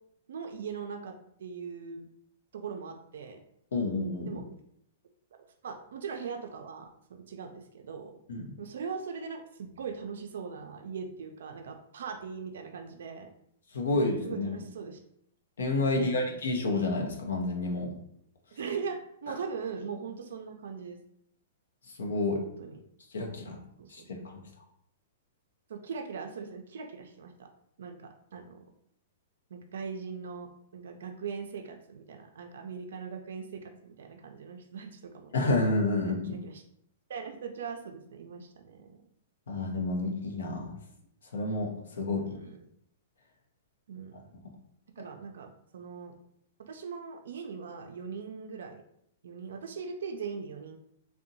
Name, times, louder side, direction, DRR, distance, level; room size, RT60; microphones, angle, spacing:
voice 1, 0.3-2.1 2.5-3.4 4.3-4.5 5.6-8.1 8.6-13.3 13.9-15.0 15.9-16.4 18.5-21.0 22.4-22.8 23.8-24.2 25.7-27.5 27.8-28.6 29.5-35.3 36.0-36.6 37.1-39.0 42.0-42.7 43.9-44.2 45.0-46.2 46.6-48.8 49.2-50.8, right 5 dB, 75° right, 4 dB, 0.3 m, -40 dB
voice 2, 3.7-4.4 8.3-8.5 13.7-14.6 15.6-17.9 22.0-22.4 23.1-23.6 23.9-24.4 35.3-36.3 39.5-40.7 41.3-42.4, left 2 dB, 85° left, 1 dB, 0.6 m, -29 dB
2.7 x 2.1 x 2.6 m, 0.71 s
hypercardioid pair, 135°, 0 cm